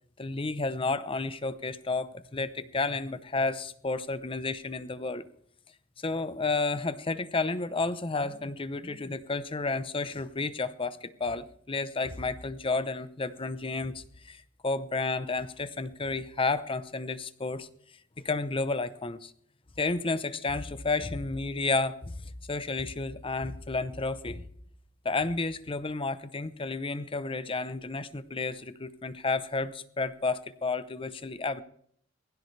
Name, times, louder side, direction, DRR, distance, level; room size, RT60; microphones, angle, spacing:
voice 1, 0.2-5.2 6.0-17.7 18.2-19.3 19.8-22.2 22.5-24.4 25.0-31.6, left 3 dB, 30° left, 14 dB, 0.8 m, -31 dB
21.0 x 16.0 x 3.3 m, 0.64 s
head